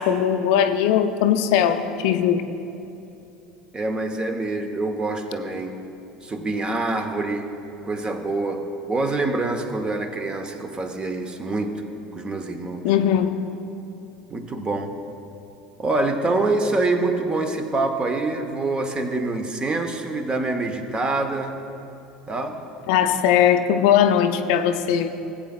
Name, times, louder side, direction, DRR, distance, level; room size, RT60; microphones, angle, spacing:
voice 1, 0.0-2.4 12.8-13.5 22.9-25.1, left 9 dB, 55° left, 8 dB, 0.5 m, -19 dB
voice 2, 3.7-5.8 6.2-7.5 7.8-11.8 12.1-12.9 14.3-14.9 15.8-21.6 22.3-22.6, right 2 dB, 20° right, 7 dB, 0.9 m, -25 dB
18.0 x 8.6 x 2.3 m, 2.8 s
figure-of-eight pair, 70°, 4 cm